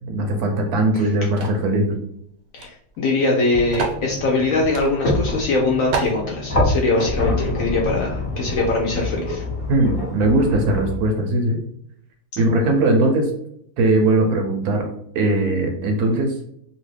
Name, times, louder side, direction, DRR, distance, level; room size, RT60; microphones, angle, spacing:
voice 1, 0.0-2.0 9.7-11.6 12.4-13.3 13.8-14.9 15.1-16.3, right 2 dB, 70° right, 3 dB, 1.0 m, -19 dB
sound 1, 1.4-1.7 2.6-2.7 2.9-3.0 3.7-4.0 4.7-4.9 5.4-5.5 5.9-6.2, right 5 dB, 90° right, 1.4 m, -27 dB
voice 2, 2.5-9.4, left 3 dB, 70° left, -1 dB, 0.8 m, -22 dB
sound 2, 3.5-11.0, left 1 dB, 40° left, 1.1 m, -26 dB
2.9 x 2.6 x 3.2 m, 0.70 s
omnidirectional pair, 1.9 m